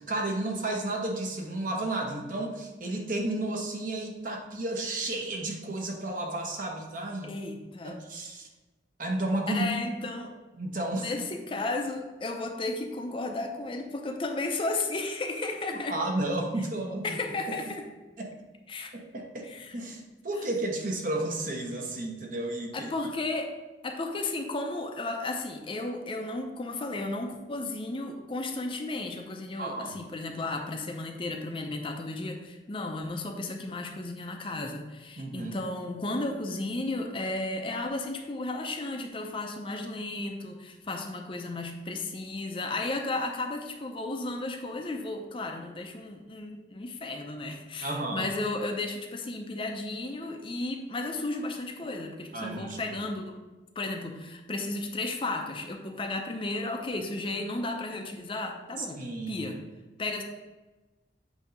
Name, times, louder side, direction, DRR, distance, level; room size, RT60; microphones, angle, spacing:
voice 1, 0.0-7.4 7.8-8.5 9.0-9.6 10.6-11.2 15.7-17.1 18.2-18.3 18.9-22.9 29.6-30.0 35.2-35.5 47.8-48.3 52.3-52.8 58.8-59.5, right 2 dB, 45° right, 1 dB, 1.0 m, -32 dB
voice 2, 7.2-8.0 9.5-10.3 10.9-16.0 17.0-17.8 18.7-18.9 19.4-19.8 22.7-23.5 23.8-53.4 53.8-59.6 60.0-60.2, left 2 dB, 30° left, 3 dB, 0.5 m, -34 dB
8.1 x 2.7 x 5.1 m, 1.1 s
head